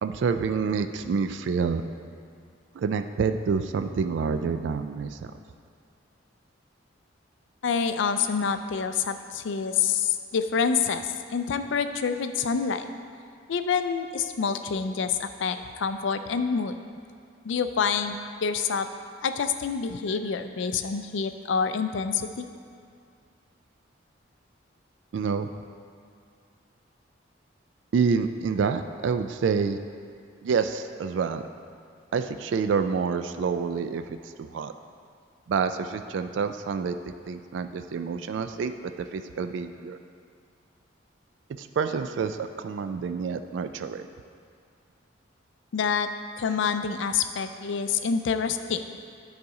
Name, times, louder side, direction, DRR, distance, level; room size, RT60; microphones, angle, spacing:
voice 1, 0.0-1.8 2.7-5.2 25.1-25.5 27.9-29.8 30.4-31.4 32.1-34.7 35.5-37.0 37.3-40.0 41.6-44.1, right 5 dB, 70° right, 9 dB, 0.3 m, -28 dB
voice 2, 7.6-12.9 13.5-16.7 17.4-18.9 19.2-22.5 45.7-46.1 46.4-48.8, left 6 dB, 70° left, 9 dB, 0.4 m, -27 dB
9.5 x 4.1 x 4.8 m, 2.3 s
head